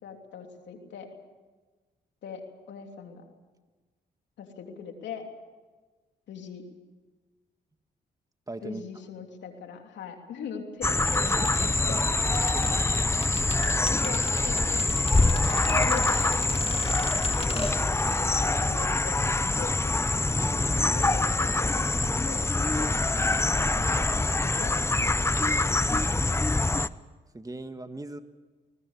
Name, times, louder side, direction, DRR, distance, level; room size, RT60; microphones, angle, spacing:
voice 1, 0.0-1.1 2.2-3.2 4.4-5.3 6.3-6.6 8.6-12.0 14.0-16.6 17.8-19.2 19.6-20.0 21.0-22.4 23.9-25.5, left 6 dB, 85° left, 3 dB, 3.1 m, -41 dB
voice 2, 8.5-8.8 11.3-11.7 12.4-12.8 17.5-17.8 27.3-28.2, right 2 dB, 20° right, 9 dB, 1.7 m, -39 dB
sound 1, 10.8-26.9, left 2 dB, 15° left, 0.7 m, -25 dB
sound 2, 11.1-18.2 18.5-18.6, left 3 dB, 35° left, 2.6 m, -41 dB
20.5 x 20.5 x 8.2 m, 1.3 s
cardioid pair, 65°, 18 cm